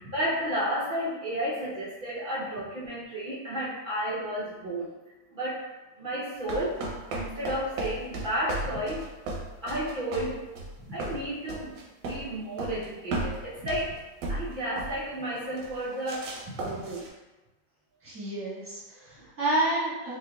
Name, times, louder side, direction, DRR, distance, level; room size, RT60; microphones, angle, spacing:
voice 1, 0.0-4.9 5.3-5.7 6.0-6.8 7.1-9.0 9.6-10.4 10.9-11.8 12.0-13.9 14.3-16.3 16.6-17.0 19.2-19.3, right 1 dB, 65° right, -8 dB, 0.4 m, -32 dB
sound 1, 6.5-12.3 12.6-12.9 13.1-14.0 14.2-15.1 15.6-15.8 16.1-17.1, right 2 dB, 90° right, 1.4 m, -35 dB
voice 2, 18.0-20.2, right 1 dB, 10° right, -8 dB, 0.9 m, -30 dB
4.9 x 2.7 x 2.2 m, 1.1 s
omnidirectional pair, 1.8 m